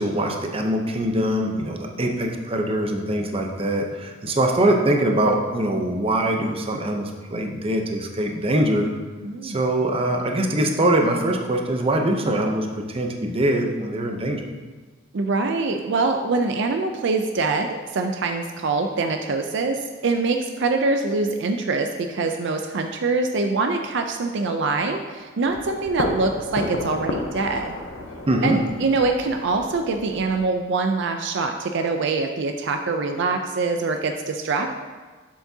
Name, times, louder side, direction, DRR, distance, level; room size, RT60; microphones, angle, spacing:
voice 1, 0.0-8.9 9.4-14.5 28.3-28.6, right 1 dB, 30° right, 2 dB, 0.7 m, -23 dB
voice 2, 9.2-9.7 15.1-27.7 28.4-34.7, right 3 dB, 65° right, 5 dB, 0.5 m, -24 dB
sound 1, 25.5-30.4, left 2 dB, 85° left, 0.8 m, -32 dB
7.2 x 7.1 x 2.8 m, 1.4 s
head